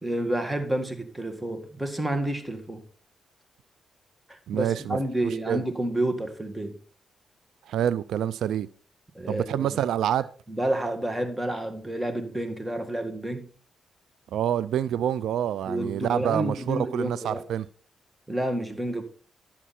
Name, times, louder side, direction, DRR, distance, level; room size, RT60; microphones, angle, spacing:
voice 1, 0.0-2.8 4.3-6.8 9.1-9.8 10.5-13.5 15.7-17.4 18.3-19.0, right 1 dB, 10° right, 1.9 m, -29 dB
voice 2, 4.5-5.0 5.5-5.6 7.7-8.7 9.3-10.3 14.3-17.6, right 10 dB, 80° right, 0.3 m, -27 dB
11.0 x 7.3 x 4.2 m
supercardioid pair, 55°, 0 cm